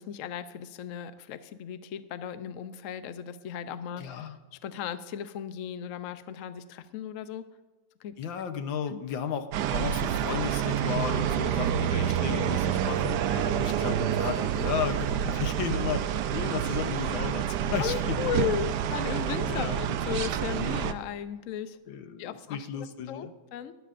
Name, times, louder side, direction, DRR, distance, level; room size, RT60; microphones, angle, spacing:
voice 1, 0.0-7.5 8.0-8.2 8.5-9.0 13.3-13.5 17.8-21.8 22.2-23.7, left 9 dB, 90° left, 11 dB, 0.7 m, -36 dB
voice 2, 4.0-4.4 8.2-13.2 13.5-16.1 16.3-18.3 19.5-19.8 21.9-23.3, left 8 dB, 75° left, 8 dB, 1.6 m, -34 dB
sound 1, 9.5-20.9, right 9 dB, 70° right, 1.0 m, -28 dB
19.0 x 12.0 x 2.5 m, 1.2 s
omnidirectional pair, 2.2 m